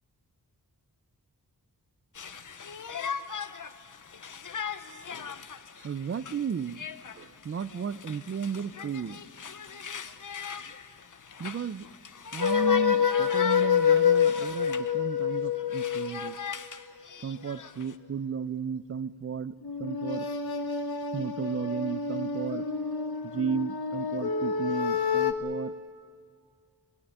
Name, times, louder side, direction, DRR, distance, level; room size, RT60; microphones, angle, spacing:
Conversation, 2.2-14.9 15.3-18.0, left 6 dB, 55° left, 0.9 m, -40 dB
voice 1, 5.8-6.9 7.2-9.3 11.4-11.9 12.3-16.4 17.2-20.3 21.1-22.7 23.2-25.7, right 6 dB, 35° right, 15 dB, 0.5 m, -34 dB
sound 1, 12.4-16.3 19.6-25.3, left 7 dB, 75° left, 1.5 m, -27 dB
25.0 x 17.5 x 9.9 m, 2.2 s
wide cardioid pair, 125°, 38 cm